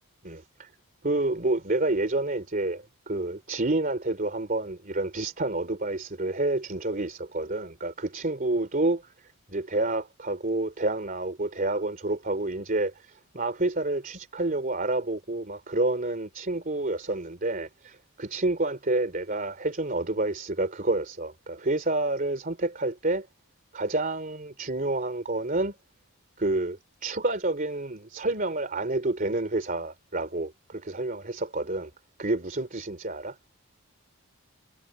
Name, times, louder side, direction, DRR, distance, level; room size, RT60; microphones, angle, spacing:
voice 1, 0.2-0.7 1.0-23.3 23.7-25.7 26.4-31.9 32.2-33.4, right 2 dB, 40° right, 3.2 m, -29 dB
head